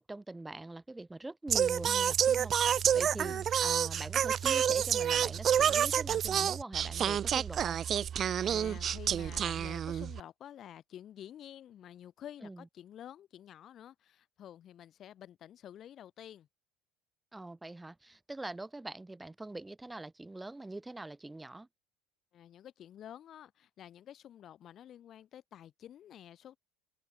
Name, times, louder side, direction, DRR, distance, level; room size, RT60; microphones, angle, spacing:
voice 1, 0.0-3.4 3.6-7.8 12.4-12.6 17.3-21.7, right 2 dB, 10° right, 5.9 m, -43 dB
Singing, 1.5-10.2, right 9 dB, 35° right, 0.6 m, -29 dB
voice 2, 8.5-16.5 22.3-26.6, left 10 dB, 40° left, 4.4 m, -50 dB
cardioid pair, 135°, 0 cm